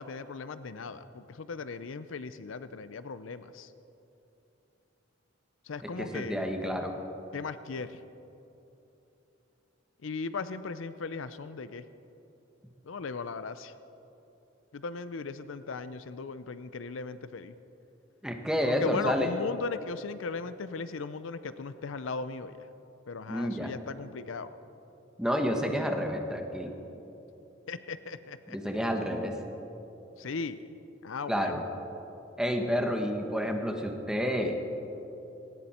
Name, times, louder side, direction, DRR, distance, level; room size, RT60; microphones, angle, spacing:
voice 1, 0.0-3.7 5.6-6.4 7.3-8.0 10.0-11.8 12.8-13.7 14.7-17.5 18.7-22.7 23.1-24.5 27.7-28.6 30.2-30.6 31.0-31.6, left 4 dB, 80° left, 13 dB, 0.5 m, -37 dB
voice 2, 5.8-6.9 18.2-19.3 23.3-23.7 25.2-26.7 28.5-29.3 31.3-31.6 32.4-34.6, equal, 5° right, 3 dB, 1.2 m, -30 dB
18.0 x 18.0 x 4.3 m, 3.0 s
head